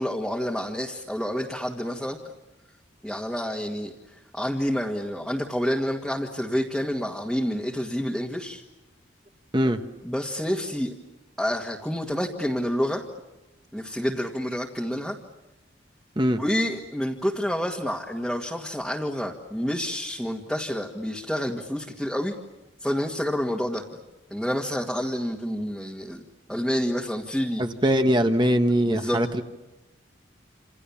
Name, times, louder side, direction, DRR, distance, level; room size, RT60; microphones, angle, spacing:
voice 1, 0.0-2.2 3.0-8.6 10.0-10.9 11.4-13.0 13.7-15.2 16.4-22.3 22.8-24.0 24.3-26.2 26.5-27.6 28.9-29.2, equal, ahead, -1 dB, 1.8 m, -28 dB
voice 2, 27.6-29.4, equal, 25° right, 6 dB, 1.3 m, -22 dB
29.0 x 28.0 x 7.2 m, 1.0 s
head